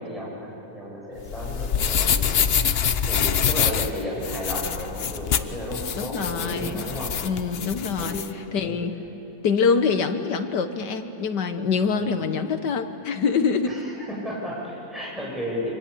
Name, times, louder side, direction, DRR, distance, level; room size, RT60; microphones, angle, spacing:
voice 1, 0.0-2.8 3.0-7.2 7.6-8.1 8.6-8.7 12.0-12.1 13.7-15.7, equal, ahead, -5 dB, 7.8 m, -33 dB
sound 1, 1.2-8.3, left 7 dB, 50° left, 0.7 m, -25 dB
voice 2, 5.9-6.8 7.2-8.2 8.5-8.9 9.4-13.8, left 5 dB, 75° left, 8 dB, 1.9 m, -25 dB
26.5 x 25.0 x 8.7 m, 2.8 s
omnidirectional pair, 1.8 m